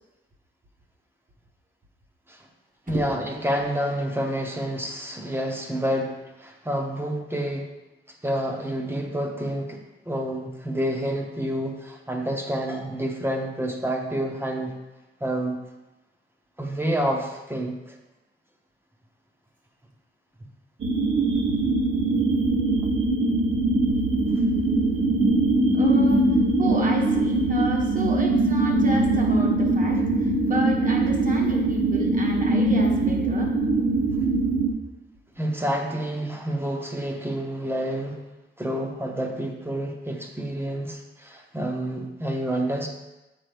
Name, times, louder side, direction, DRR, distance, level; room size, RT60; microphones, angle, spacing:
voice 1, 2.9-7.7 8.2-9.8 10.1-14.7 15.2-15.6 16.6-18.0 35.4-38.2 38.6-42.9, equal, 10° right, 2 dB, 0.7 m, -28 dB
sound 1, 20.8-34.7, right 2 dB, 80° right, 1.0 m, -22 dB
voice 2, 25.7-26.3 26.6-33.5, right 1 dB, 40° right, 0 dB, 1.1 m, -33 dB
7.6 x 5.0 x 3.4 m, 1.0 s
wide cardioid pair, 140°, 21 cm